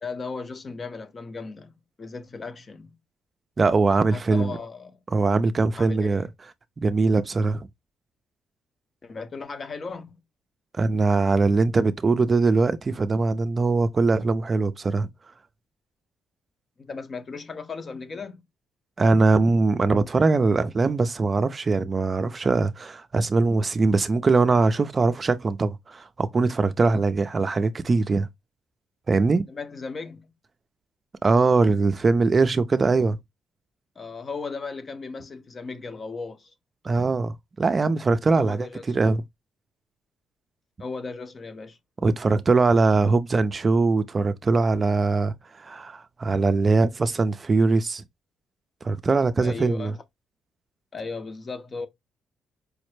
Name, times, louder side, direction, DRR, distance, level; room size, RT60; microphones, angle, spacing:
voice 1, 0.0-3.0 4.1-5.0 5.8-6.3 9.0-10.2 16.8-18.4 29.5-30.3 34.0-36.5 38.3-38.8 40.8-41.8 49.4-50.0 50.9-51.9, left 4 dB, 35° left, 0.7 m, -36 dB
voice 2, 3.6-4.5 5.1-6.3 6.8-7.7 10.7-15.1 19.0-28.3 29.1-29.4 31.2-33.2 36.8-39.2 42.0-48.0 48.8-49.9, right 3 dB, 35° right, 0.4 m, -21 dB
4.9 x 2.1 x 3.1 m
cardioid pair, 90°, 0 cm